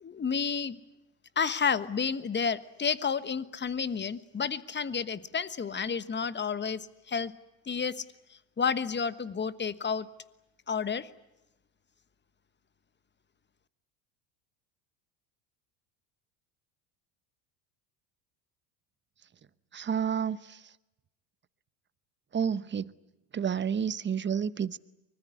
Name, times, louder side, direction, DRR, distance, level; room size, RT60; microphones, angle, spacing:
voice 1, 0.0-0.8 1.4-6.8 7.1-7.3 7.7-7.9 8.6-10.1 10.7-11.1, left 6 dB, 20° left, 1.3 m, -30 dB
voice 2, 19.7-20.7 22.3-22.9 23.3-24.8, right 7 dB, 20° right, 0.9 m, -30 dB
24.5 x 21.0 x 9.9 m
supercardioid pair, 90°, 49 cm